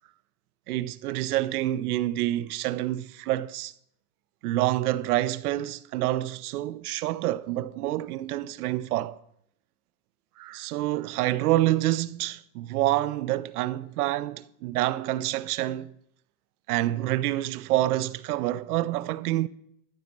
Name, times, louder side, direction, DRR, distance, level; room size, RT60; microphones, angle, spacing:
voice 1, 0.7-3.7 4.4-9.2 10.4-16.0 16.7-19.5, right 15 dB, 70° right, 0.6 m, -27 dB
12.0 x 4.1 x 5.9 m
hypercardioid pair, 135°, 47 cm